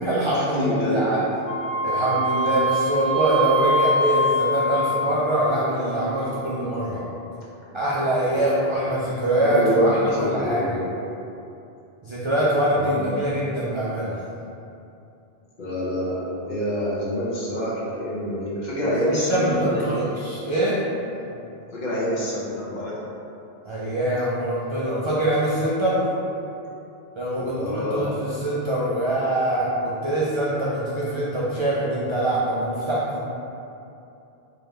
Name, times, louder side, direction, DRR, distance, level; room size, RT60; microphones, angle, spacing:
voice 1, 0.0-1.2 1.8-7.0 7.7-10.6 12.0-14.2 18.8-20.8 21.2-21.4 23.7-26.1 27.2-33.2, right 1 dB, 55° right, -8 dB, 0.3 m, -24 dB
voice 2, 0.6-1.2 8.3-8.9 9.4-10.9 12.7-13.1 15.6-19.9 21.7-23.0 27.3-28.1, equal, 45° left, -7 dB, 0.8 m, -26 dB
Wind instrument woodwind instrument, 1.5-5.4, equal, 70° left, 1.1 m, -23 dB
3.9 x 2.6 x 3.2 m, 2.7 s
omnidirectional pair, 1.2 m